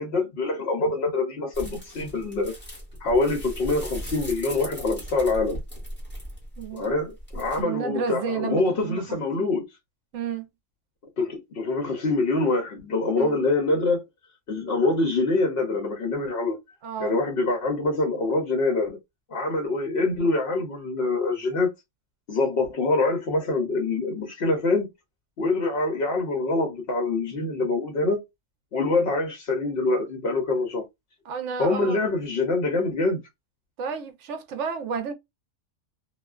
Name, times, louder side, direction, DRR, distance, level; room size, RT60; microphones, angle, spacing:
voice 1, 0.0-2.5 3.0-5.6 6.7-9.7 11.2-14.0 14.5-16.6 17.0-19.0 19.3-21.7 22.3-24.9 25.4-28.2 28.7-30.8 31.6-33.2, left 3 dB, 60° left, 0.8 m, -25 dB
sound 1, 1.5-7.6, equal, 10° left, 1.2 m, -38 dB
voice 2, 6.6-6.9 7.6-9.5 10.1-10.5 13.2-13.4 16.8-17.2 31.3-32.1 33.8-35.1, right 6 dB, 70° right, 0.9 m, -31 dB
2.4 x 2.3 x 2.3 m
omnidirectional pair, 1.3 m